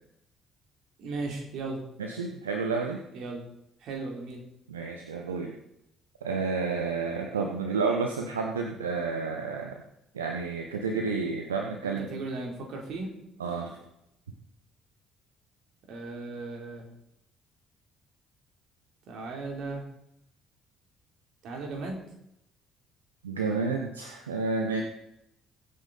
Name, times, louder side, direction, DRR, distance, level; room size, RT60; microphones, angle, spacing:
voice 1, 1.0-1.8 3.1-3.4 3.8-4.4 11.8-13.1 15.9-16.9 19.1-19.8 21.4-22.0, right 3 dB, 55° right, 1 dB, 3.4 m, -36 dB
voice 2, 2.0-3.0 4.7-5.6 6.2-9.8 10.1-12.1 13.4-13.8 23.2-24.8, right 4 dB, 80° right, 2 dB, 1.1 m, -30 dB
22.0 x 8.6 x 4.2 m, 0.82 s
figure-of-eight pair, 50°, 0 cm